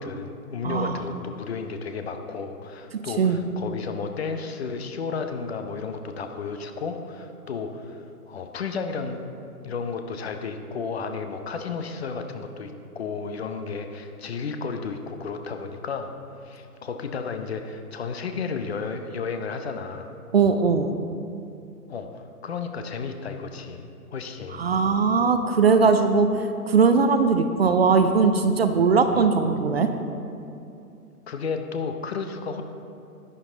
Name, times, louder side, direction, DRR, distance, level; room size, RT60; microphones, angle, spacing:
voice 1, 0.0-9.2 9.6-16.1 16.4-20.1 21.9-23.8 24.1-24.6 31.3-32.6, left 5 dB, 45° left, 6 dB, 0.7 m, -33 dB
voice 2, 0.6-1.0 2.9-3.4 20.3-20.9 24.5-29.9, right 5 dB, 45° right, 8 dB, 0.5 m, -20 dB
11.0 x 9.0 x 3.9 m, 2.6 s
figure-of-eight pair, 125°, 46 cm